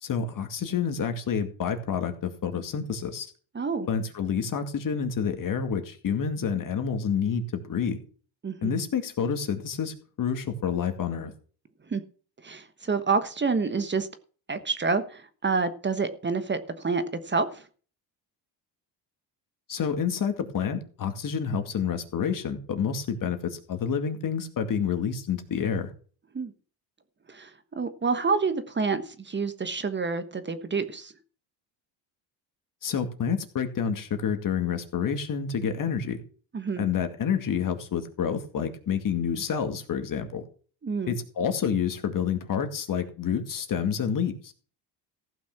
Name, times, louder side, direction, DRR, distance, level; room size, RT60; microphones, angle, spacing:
voice 1, 0.0-3.3 3.9-8.0 8.6-11.3 19.7-25.9 32.8-36.2 36.8-40.4 41.1-44.5, left 7 dB, 45° left, 7 dB, 2.2 m, -28 dB
voice 2, 3.5-3.9 8.4-8.8 11.9-12.0 12.4-14.1 14.5-17.6 26.3-26.5 27.3-31.1 36.5-36.8 40.8-41.2, right 4 dB, 25° right, 10 dB, 1.3 m, -28 dB
15.0 x 6.0 x 6.0 m, 0.41 s
supercardioid pair, 90°, 45 cm